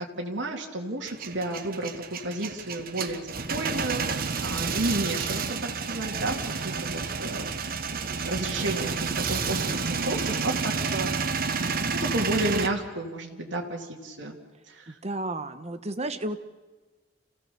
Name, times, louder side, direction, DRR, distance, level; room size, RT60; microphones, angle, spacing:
voice 1, 0.2-5.4 5.9-6.4 6.6-14.4 14.7-15.0, right 2 dB, 85° right, 1 dB, 2.5 m, -32 dB
Male speech man speaking / Vehicle / Engine starting, 1.1-12.7, right 5 dB, 55° right, 1.2 m, -30 dB
voice 2, 14.9-16.4, right 2 dB, 35° right, 9 dB, 1.2 m, -32 dB
27.5 x 16.5 x 7.0 m, 1.3 s
head